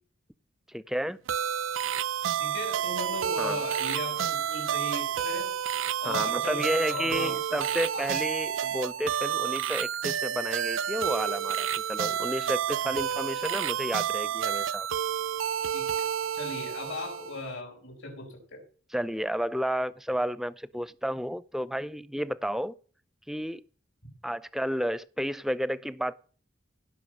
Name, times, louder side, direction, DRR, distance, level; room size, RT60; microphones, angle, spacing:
voice 1, 0.7-1.2 3.4-3.7 6.0-14.9 18.9-22.8 23.3-23.6 24.2-26.1, equal, ahead, 0.5 m, -31 dB
sound 1, 1.3-17.5, right 9 dB, 85° right, 0.5 m, -30 dB
voice 2, 2.4-5.5 6.0-6.6 6.9-7.6 7.9-8.1 12.8-13.0 15.7-16.0 16.3-18.6, left 2 dB, 70° left, 5.5 m, -37 dB
17.0 x 5.7 x 6.4 m
head